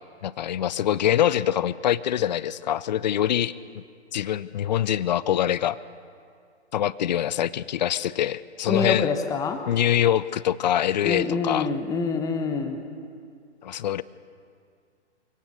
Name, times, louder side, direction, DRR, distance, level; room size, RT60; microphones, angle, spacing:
voice 1, 0.2-3.8 4.1-5.8 6.7-9.1 9.7-11.7 13.6-14.0, left 11 dB, 40° left, 18 dB, 0.5 m, -24 dB
voice 2, 8.7-9.6 11.0-12.8, left 5 dB, 10° left, 6 dB, 1.0 m, -26 dB
24.5 x 17.5 x 6.7 m, 2.2 s
figure-of-eight pair, 135°, 35 cm